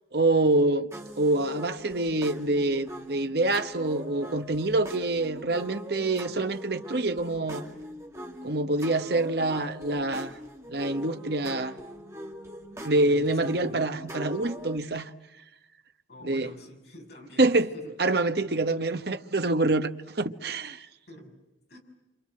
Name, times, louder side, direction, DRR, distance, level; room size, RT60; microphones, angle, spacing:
voice 1, 0.1-0.9 1.2-7.7 8.4-10.4 10.7-11.8 12.8-15.1 16.2-16.5 17.4-17.7 18.0-20.9, right 2 dB, 55° right, 1.1 m, -26 dB
sound 1, 0.9-14.8, equal, 15° right, 2.4 m, -42 dB
voice 2, 12.8-13.8 16.1-17.9 21.1-21.4 21.7-21.8, left 1 dB, 55° left, 6.2 m, -47 dB
28.5 x 27.0 x 7.7 m
head